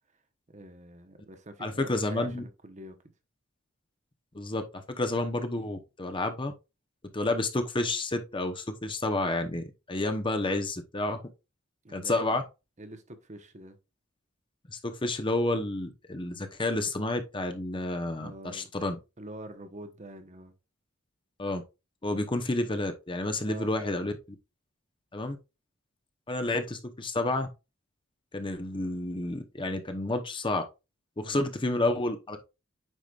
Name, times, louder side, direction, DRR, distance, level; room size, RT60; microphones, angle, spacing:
voice 1, 0.5-3.0 11.8-12.3 12.8-13.8 18.2-18.7 19.2-20.5 23.4-24.0 31.2-31.5, right 1 dB, 35° right, 1.0 m, -45 dB
voice 2, 1.6-2.4 4.3-6.5 7.1-11.2 11.9-12.4 14.7-19.0 21.4-21.6 22.0-24.1 25.1-25.4 26.3-27.5 28.3-30.6 31.2-32.5, left 2 dB, 25° left, 0.9 m, -30 dB
9.1 x 5.0 x 2.4 m
head